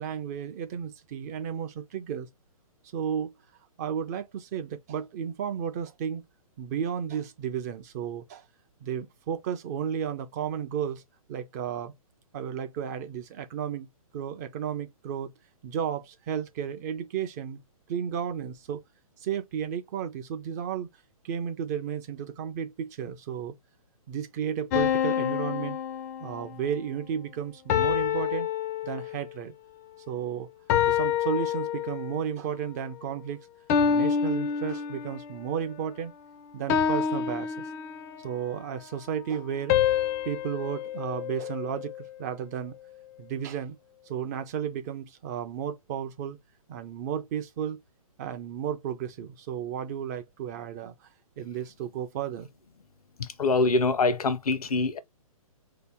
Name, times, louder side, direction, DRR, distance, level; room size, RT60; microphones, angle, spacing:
voice 1, 0.0-2.3 2.9-3.3 3.8-6.2 6.6-8.5 8.8-11.0 11.3-11.9 12.3-13.9 14.1-15.3 15.6-17.6 17.9-18.8 19.2-20.9 21.2-23.5 24.1-25.8 26.2-28.5 28.8-29.5 30.1-30.5 30.8-33.4 33.8-36.1 36.5-37.5 38.2-39.7 40.3-42.8 43.2-43.8 44.0-46.4 46.7-47.8 48.2-51.1 51.4-52.5, right 8 dB, 30° right, 0.4 m, -33 dB
sound 1, 24.7-26.6 27.7-29.4 30.7-32.3 33.7-35.4 36.7-38.3 39.7-42.0, left 8 dB, 25° left, 0.4 m, -27 dB
voice 2, 53.4-55.0, left 3 dB, 80° left, 0.8 m, -24 dB
3.9 x 2.9 x 3.3 m
hypercardioid pair, 135°, 19 cm